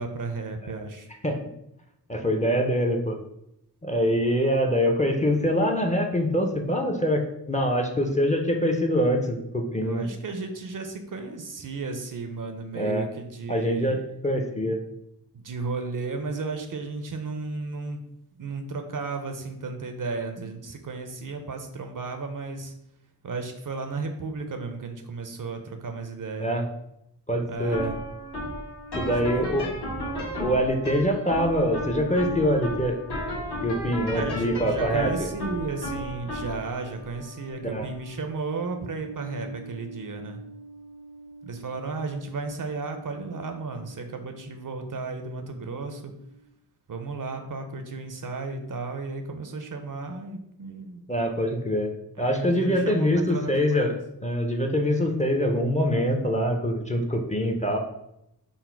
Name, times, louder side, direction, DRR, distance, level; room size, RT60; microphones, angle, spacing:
voice 1, 0.0-1.1 9.8-14.0 15.3-18.0 18.4-22.7 23.2-26.5 27.5-28.0 28.9-29.2 29.5-29.6 34.1-40.4 41.4-46.1 46.9-51.0 52.2-54.0, right 3 dB, 50° right, 6 dB, 0.5 m, -34 dB
voice 2, 2.1-3.2 3.8-10.1 12.7-13.1 13.5-14.8 26.4-26.6 27.3-27.9 28.9-29.7 30.4-33.0 33.6-35.3 37.6-37.9 51.1-51.9 52.2-53.9 54.2-57.8, equal, 15° left, 2 dB, 0.5 m, -24 dB
sound 1, 27.6-44.8, equal, 70° left, 1.3 m, -36 dB
3.9 x 2.1 x 4.4 m, 0.82 s
cardioid pair, 50°, 41 cm